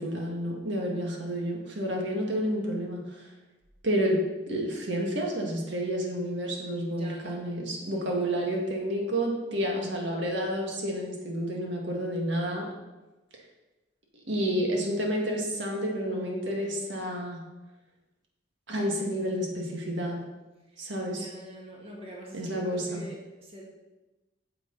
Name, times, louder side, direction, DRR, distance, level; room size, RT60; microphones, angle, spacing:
voice 1, 0.0-3.2 3.8-4.2 4.5-12.7 14.3-17.4 18.7-20.2 20.8-21.2 22.3-23.0, equal, 70° right, -1 dB, 1.7 m, -30 dB
voice 2, 6.9-7.5 7.8-8.6 20.7-23.6, right 1 dB, 30° right, -2 dB, 1.8 m, -45 dB
9.5 x 7.6 x 4.0 m, 1.1 s
head